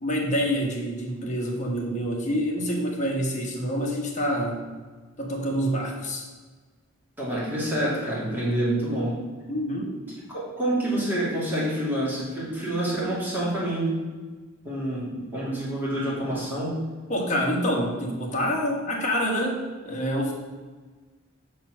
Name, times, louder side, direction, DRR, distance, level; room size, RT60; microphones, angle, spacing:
voice 1, 0.0-4.6 5.2-6.2 9.5-10.0 17.1-19.6 19.8-20.3, equal, 35° left, -1 dB, 1.4 m, -27 dB
voice 2, 7.2-9.2 10.3-14.0 14.6-16.8, right 1 dB, 10° right, -7 dB, 2.5 m, -27 dB
6.7 x 4.3 x 6.4 m, 1.4 s
head